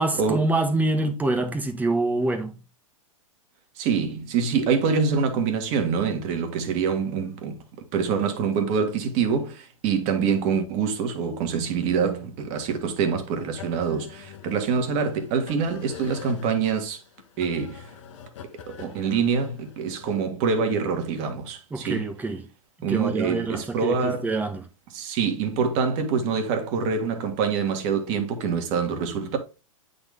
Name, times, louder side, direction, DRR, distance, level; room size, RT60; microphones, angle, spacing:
voice 1, 0.0-2.6 21.7-22.5 22.9-24.6, right 2 dB, 10° right, 1.3 m, -26 dB
voice 2, 3.8-7.6 7.9-17.0 17.4-17.9 18.7-22.0 22.8-24.3 24.9-29.4, right 6 dB, 40° right, 1.6 m, -25 dB
sound 1, 13.6-20.1, left 7 dB, 60° left, 1.2 m, -44 dB
8.7 x 4.0 x 3.5 m
hypercardioid pair, 110°, 18 cm